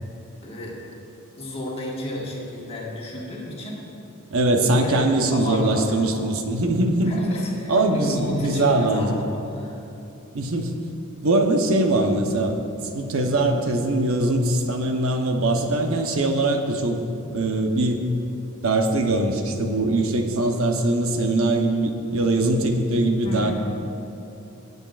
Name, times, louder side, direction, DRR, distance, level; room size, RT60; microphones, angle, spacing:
voice 1, 0.4-0.8 1.4-3.8 4.7-6.4 7.0-9.8 23.2-23.5, left 1 dB, 30° left, -3 dB, 1.5 m, -32 dB
voice 2, 4.3-7.1 7.7-9.2 10.3-10.7 11.2-12.6 12.9-17.0 17.3-18.1 18.6-23.5, right 2 dB, 70° right, 4 dB, 0.9 m, -22 dB
17.0 x 8.0 x 2.4 m, 2.8 s
head